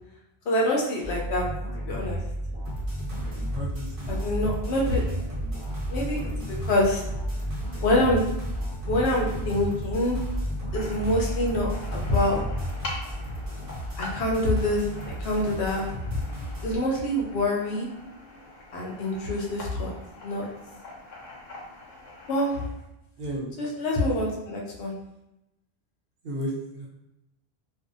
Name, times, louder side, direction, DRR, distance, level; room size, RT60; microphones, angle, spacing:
voice 1, 0.5-1.4 1.9-2.2 4.1-5.0 5.9-7.0 7.8-8.2 8.9-10.2 10.7-12.4 14.0-16.2 16.6-17.9 18.7-19.9 20.2-20.4 22.3-22.6 23.6-24.9, left 1 dB, 85° left, -2 dB, 0.9 m, -26 dB
sound 1, 1.0-13.3, right 1 dB, 5° right, 1.0 m, -33 dB
sound 2, 2.7-16.8, equal, 35° right, 0.7 m, -36 dB
voice 2, 3.5-4.2 10.3-10.4 23.2-23.5 26.2-26.9, right 1 dB, 65° right, -4 dB, 0.9 m, -33 dB
sound 3, 10.7-22.7, left 2 dB, 50° left, 0.6 m, -43 dB
2.6 x 2.3 x 2.5 m, 0.91 s
omnidirectional pair, 1.1 m